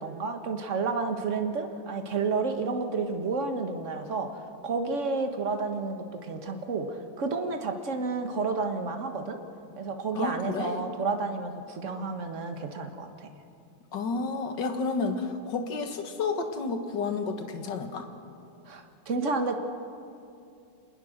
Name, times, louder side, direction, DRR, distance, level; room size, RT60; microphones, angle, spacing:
voice 1, 0.0-9.4 9.8-13.3 18.7-19.6, right 4 dB, 40° right, 6 dB, 1.8 m, -31 dB
voice 2, 10.2-10.8 13.9-18.1, left 4 dB, 65° left, 6 dB, 2.2 m, -31 dB
27.0 x 20.0 x 6.6 m, 2.6 s
omnidirectional pair, 2.1 m